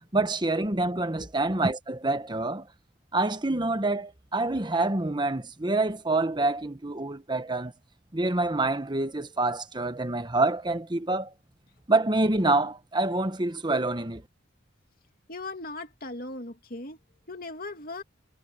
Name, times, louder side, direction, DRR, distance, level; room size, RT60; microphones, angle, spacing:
voice 1, 0.1-2.6 3.1-7.7 8.1-11.3 11.9-14.2, right 2 dB, 25° right, 1.2 m, -26 dB
voice 2, 15.3-17.0 17.3-18.0, left 2 dB, 50° left, 2.6 m, -38 dB
head